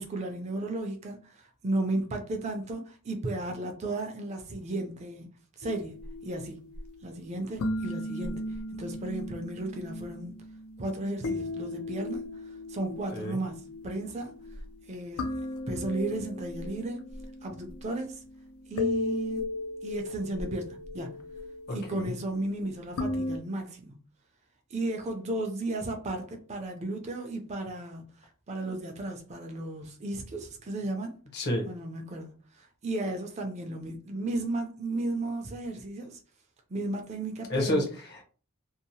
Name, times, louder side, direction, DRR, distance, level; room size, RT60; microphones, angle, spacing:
voice 1, 0.0-5.3 5.6-6.0 6.2-6.6 7.0-8.4 8.7-10.3 10.8-14.3 14.9-15.3 15.7-17.0 17.4-18.2 18.7-19.5 19.8-21.1 21.7-23.9 24.7-28.0 28.5-31.1 31.6-36.2 36.7-37.9, right 2 dB, 30° right, 0.4 m, -34 dB
sound 1, 5.6-23.4, left 2 dB, 80° left, 0.4 m, -37 dB
voice 2, 21.7-22.1 31.3-31.7 37.5-38.2, left 1 dB, 50° left, 0.7 m, -30 dB
2.7 x 2.0 x 2.7 m
head